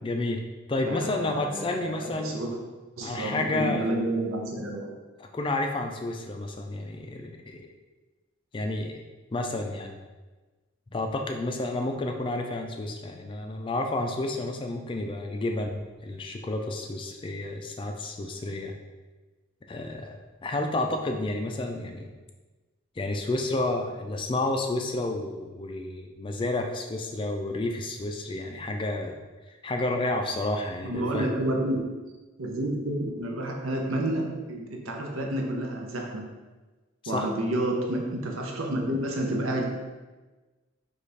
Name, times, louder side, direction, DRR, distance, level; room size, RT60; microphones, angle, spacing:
voice 1, 0.0-0.4 0.7-2.4 3.0-3.9 5.2-7.7 8.5-9.0 9.3-10.0 10.9-18.7 19.7-22.1 23.0-29.1 29.5-31.3 37.0-37.3, left 2 dB, 25° left, 4 dB, 0.3 m, -30 dB
voice 2, 0.9-2.6 3.0-5.0 30.8-31.9 32.4-36.3 37.1-39.6, right 1 dB, 85° right, 1 dB, 0.7 m, -30 dB
5.0 x 2.4 x 4.1 m, 1.2 s
head